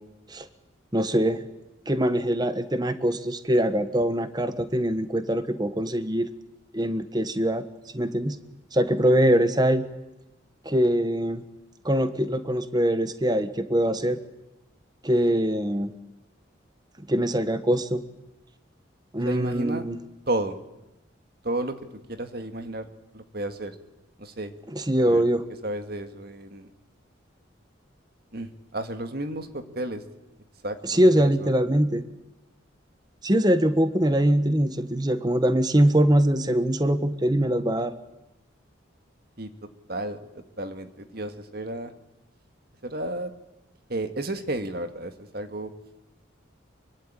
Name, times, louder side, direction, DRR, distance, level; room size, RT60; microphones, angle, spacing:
voice 1, 0.9-1.4 1.9-6.3 6.7-7.7 7.9-8.4 8.7-9.9 10.6-11.4 11.8-14.2 15.0-15.9 17.1-18.0 19.1-20.0 24.7-25.4 30.8-32.0 33.2-37.9, right 1 dB, 20° right, 11 dB, 1.2 m, -23 dB
voice 2, 19.1-19.8 20.3-20.6 21.4-22.9 23.1-23.8 24.2-24.5 25.0-25.2 25.6-26.7 28.3-30.0 30.6-31.5 39.4-39.5 39.9-40.2 40.6-41.9 42.8-43.3 43.9-45.7, right 1 dB, 50° right, 8 dB, 2.0 m, -32 dB
24.0 x 24.0 x 9.0 m, 0.95 s
head